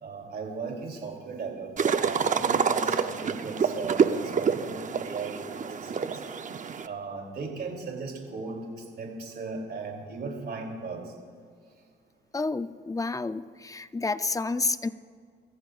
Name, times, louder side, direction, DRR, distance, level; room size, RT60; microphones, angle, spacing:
voice 1, 0.0-5.6 6.0-6.1 6.9-8.6 8.9-11.0, right 4 dB, 55° right, 1 dB, 3.1 m, -37 dB
sound 1, 1.8-6.9, right 6 dB, 40° right, 0.7 m, -27 dB
voice 2, 12.3-14.9, left 3 dB, 15° left, 13 dB, 0.5 m, -30 dB
24.0 x 14.5 x 2.5 m, 2.1 s
cardioid pair, 90°, 20 cm